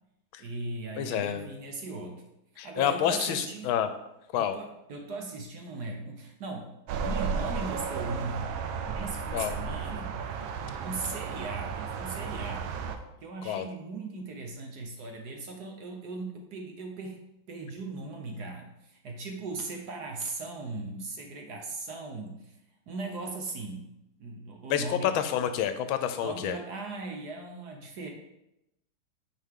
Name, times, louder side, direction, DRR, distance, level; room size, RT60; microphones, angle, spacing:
voice 1, 0.4-2.2 2.6-3.7 4.3-8.5 8.8-10.2 10.8-12.7 13.2-17.2 17.5-22.6 22.9-23.9 24.2-25.2 26.2-28.1, right 3 dB, 60° right, 2 dB, 1.3 m, -38 dB
voice 2, 1.0-1.5 2.6-3.9 4.3-4.5 9.3-9.6 13.4-13.6 24.7-26.6, left 10 dB, 80° left, 10 dB, 1.3 m, -28 dB
sound 1, 6.9-13.0, right 5 dB, 80° right, 1.4 m, -34 dB
9.1 x 4.7 x 3.7 m, 0.87 s
omnidirectional pair, 2.3 m